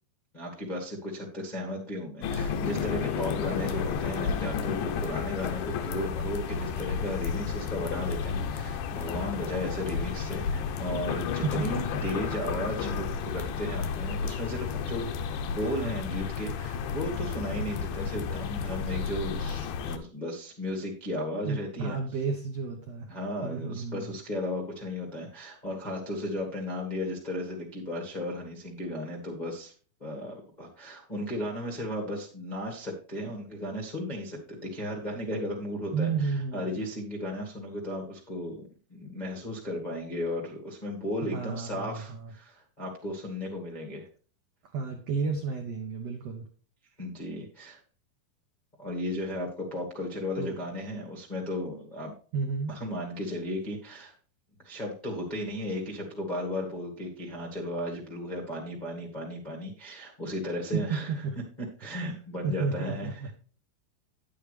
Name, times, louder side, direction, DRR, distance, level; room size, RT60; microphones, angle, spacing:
voice 1, 0.3-15.1 15.4-22.0 23.1-29.7 30.0-38.6 38.9-44.1 47.0-47.8 48.8-52.1 52.7-54.1 54.6-61.1 61.8-63.3, left 1 dB, 40° left, -3 dB, 0.6 m, -35 dB
sound 1, 2.2-20.0, left 6 dB, 75° left, 1.9 m, -32 dB
voice 2, 11.4-12.1 21.4-23.1 23.4-24.2 35.9-36.8 41.3-42.3 44.7-46.5 50.4-50.6 52.3-52.8 60.7-61.4 62.0-62.2 62.4-63.3, right 5 dB, 90° right, 3 dB, 1.4 m, -32 dB
10.0 x 8.8 x 3.3 m, 0.40 s
omnidirectional pair, 4.5 m